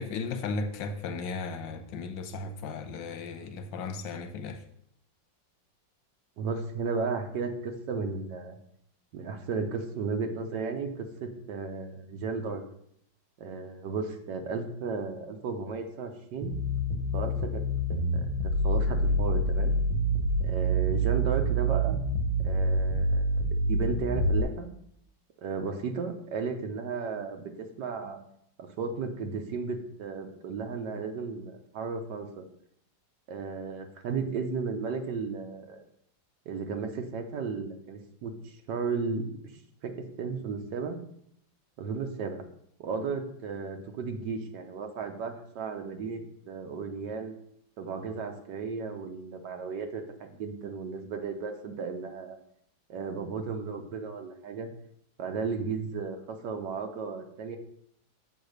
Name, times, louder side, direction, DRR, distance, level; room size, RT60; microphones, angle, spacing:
voice 1, 0.0-4.6, left 4 dB, 90° left, 7 dB, 1.5 m, -35 dB
voice 2, 6.4-8.6 9.1-12.6 13.4-16.5 17.1-17.6 17.9-18.3 18.6-19.8 20.4-22.0 22.4-24.7 25.4-28.2 28.6-32.4 33.3-35.8 36.5-39.4 39.8-41.0 41.8-42.4 42.8-47.3 47.8-52.4 52.9-54.7 55.2-57.6, right 4 dB, 70° right, 5 dB, 1.5 m, -34 dB
sound 1, 16.4-24.4, right 1 dB, 85° right, 1.8 m, -27 dB
7.4 x 4.0 x 6.4 m, 0.70 s
omnidirectional pair, 2.0 m